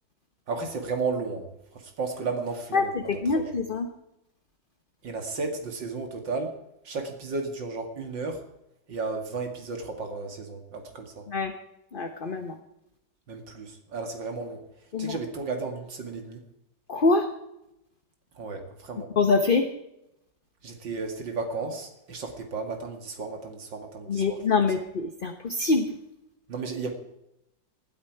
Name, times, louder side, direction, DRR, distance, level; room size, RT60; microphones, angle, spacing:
voice 1, 0.5-3.5 5.0-6.5 6.8-8.4 8.9-11.3 13.3-14.6 15.0-16.4 18.4-19.1 20.6-24.6 26.5-26.9, right 4 dB, 75° right, 5 dB, 2.9 m, -34 dB
voice 2, 2.7-3.9 11.3-11.5 11.9-12.6 14.9-15.2 16.9-17.3 19.2-19.7 24.1-25.9, left 4 dB, 35° left, 6 dB, 1.0 m, -25 dB
19.0 x 13.0 x 4.8 m, 0.87 s
omnidirectional pair, 2.0 m